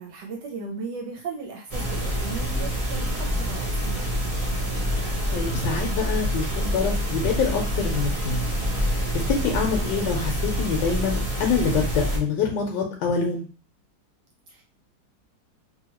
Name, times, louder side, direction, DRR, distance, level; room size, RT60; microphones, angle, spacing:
voice 1, 0.0-4.1 14.5-14.6, right 4 dB, 75° right, 1 dB, 1.2 m, -36 dB
sound 1, 1.7-12.2, equal, 35° right, 0.5 m, -26 dB
voice 2, 4.9-8.5 9.1-13.4, left 5 dB, 75° left, 0 dB, 1.3 m, -26 dB
2.9 x 2.8 x 2.9 m, 0.37 s
omnidirectional pair, 2.0 m